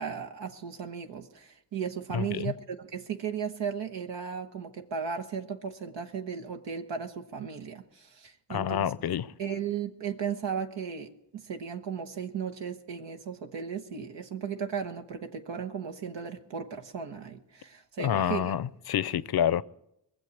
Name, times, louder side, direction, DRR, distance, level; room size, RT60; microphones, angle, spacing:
voice 1, 0.0-9.1 9.4-18.5, right 7 dB, 80° right, 1.1 m, -36 dB
voice 2, 2.1-2.5 8.5-9.3 18.0-19.6, left 9 dB, 60° left, 0.6 m, -28 dB
20.0 x 7.4 x 8.1 m
supercardioid pair, 45°, 43 cm